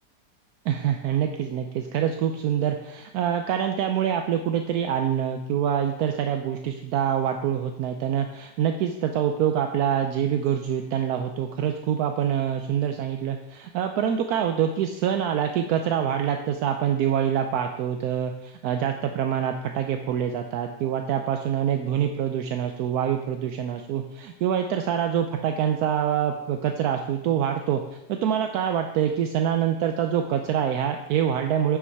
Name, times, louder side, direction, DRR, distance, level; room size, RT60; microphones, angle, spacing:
voice 1, 0.7-27.8 28.1-31.8, right 9 dB, 75° right, 5 dB, 1.1 m, -25 dB
8.2 x 6.1 x 4.6 m, 0.87 s
omnidirectional pair, 1.7 m